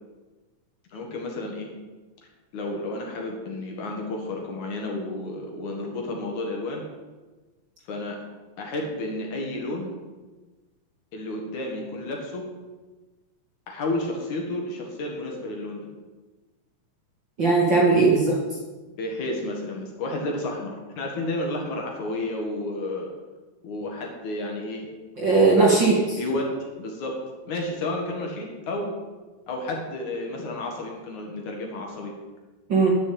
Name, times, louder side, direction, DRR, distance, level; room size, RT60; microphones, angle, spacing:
voice 1, 0.9-1.7 2.5-6.9 7.9-8.2 8.6-9.9 11.1-12.5 13.7-15.9 19.0-23.1 23.6-24.9 25.7-26.5 26.8-27.2 27.5-28.9 29.5-32.1, left 2 dB, 60° left, 0 dB, 3.0 m, -31 dB
voice 2, 17.4-18.3 25.2-26.2 32.7-32.9, right 3 dB, 40° right, -3 dB, 2.2 m, -18 dB
11.0 x 6.5 x 8.6 m, 1.2 s
omnidirectional pair, 4.1 m